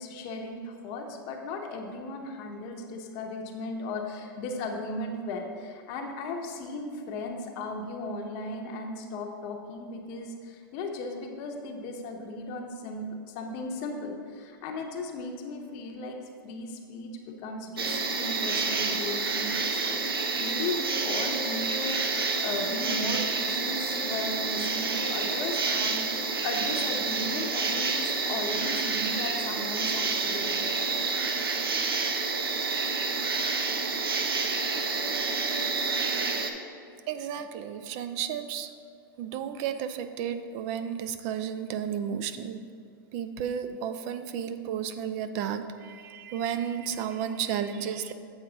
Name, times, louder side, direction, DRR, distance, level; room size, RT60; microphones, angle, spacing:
voice 1, 0.0-16.2 16.4-26.2 26.4-30.7, left 2 dB, 45° left, 3 dB, 0.8 m, -36 dB
sound 1, 17.8-36.5, right 4 dB, 90° right, 0.7 m, -29 dB
voice 2, 37.1-38.7 39.2-42.6 43.1-48.1, right 8 dB, 45° right, 10 dB, 0.5 m, -33 dB
8.0 x 4.6 x 3.9 m, 2.4 s
hypercardioid pair, 115°, 12 cm